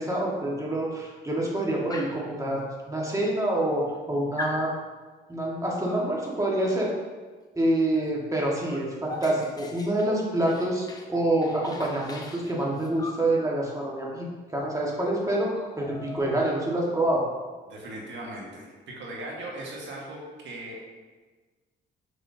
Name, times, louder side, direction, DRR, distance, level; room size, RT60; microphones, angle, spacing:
voice 1, 0.0-4.7 5.3-6.9 7.5-14.3 14.5-15.5 15.8-17.2, right 1 dB, 15° right, -3 dB, 1.7 m, -27 dB
Dog, 1.9-2.3 3.2-3.3 3.5-4.0 4.4-4.7 5.8-6.1 8.0-8.1 8.4-11.1 11.4-13.3 14.6-14.7 15.0-15.1 15.4-16.7, left 2 dB, 20° left, 0.8 m, -40 dB
voice 2, 17.7-20.2 20.4-20.9, right 1 dB, 70° right, -2 dB, 1.7 m, -38 dB
6.3 x 5.9 x 2.8 m, 1.3 s
cardioid pair, 90°, 20 cm